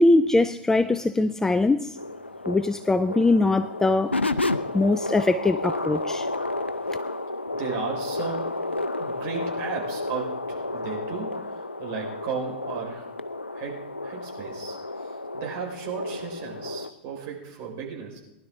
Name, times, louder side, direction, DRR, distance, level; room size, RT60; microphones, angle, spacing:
voice 1, 0.0-2.0 2.5-4.1 4.7-6.3, left 2 dB, 10° left, 0.4 m, -21 dB
sound 1, 2.0-16.9, left 2 dB, 85° left, 0.6 m, -31 dB
voice 2, 7.5-8.5 9.0-11.3 11.8-13.1 13.5-13.8 14.0-15.1 15.3-18.2, right 5 dB, 40° right, 5.0 m, -34 dB
19.5 x 11.5 x 3.8 m
figure-of-eight pair, 95°, 6 cm